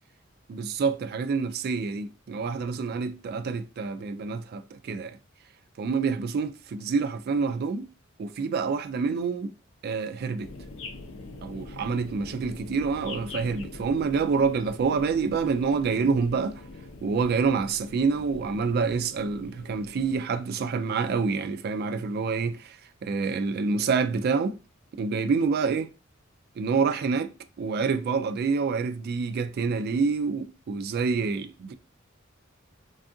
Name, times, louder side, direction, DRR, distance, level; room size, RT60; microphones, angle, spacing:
voice 1, 0.5-5.2 5.8-7.9 8.2-9.5 9.8-10.5 11.4-16.6 17.0-22.8 23.0-24.6 25.0-25.9 26.6-27.3 27.6-31.7, right 5 dB, 50° right, 0.3 m, -27 dB
sound 1, 10.4-20.2, left 2 dB, 70° left, 0.5 m, -43 dB
3.4 x 2.4 x 2.6 m
head